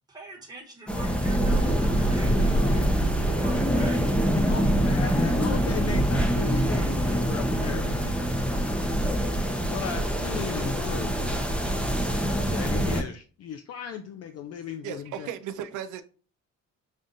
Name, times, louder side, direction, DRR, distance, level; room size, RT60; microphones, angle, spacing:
voice 1, 0.1-3.0 3.2-4.0, right 2 dB, 15° right, 1.2 m, -44 dB
sound 1, 0.9-13.0, equal, 5° left, 0.6 m, -24 dB
voice 2, 2.4-2.9 4.5-8.2 9.7-11.2 12.3-15.3, left 8 dB, 55° left, 0.4 m, -36 dB
voice 3, 14.8-16.0, right 9 dB, 80° right, 0.5 m, -35 dB
5.4 x 2.4 x 2.6 m
cardioid pair, 90°, 30 cm